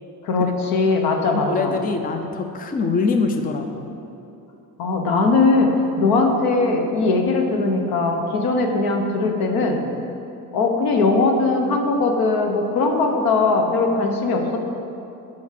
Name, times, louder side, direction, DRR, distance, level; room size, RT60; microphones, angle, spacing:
voice 1, 0.2-1.8 4.8-9.8 10.5-14.6, left 3 dB, 85° left, 3 dB, 1.2 m, -20 dB
voice 2, 1.3-4.0, left 4 dB, 25° left, 6 dB, 0.5 m, -24 dB
8.5 x 5.2 x 6.6 m, 2.9 s
cardioid pair, 135°, 35 cm